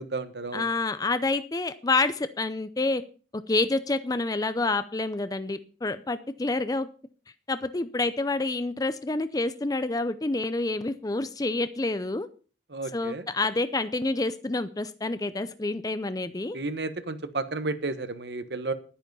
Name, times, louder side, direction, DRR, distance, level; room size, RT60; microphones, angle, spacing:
voice 1, 0.0-0.7 12.7-13.2 16.5-18.7, right 3 dB, 70° right, 11 dB, 1.2 m, -32 dB
voice 2, 0.5-3.0 3.3-6.9 7.5-12.3 12.9-16.6, left 2 dB, 20° left, 12 dB, 0.5 m, -28 dB
10.5 x 10.0 x 5.4 m, 0.38 s
head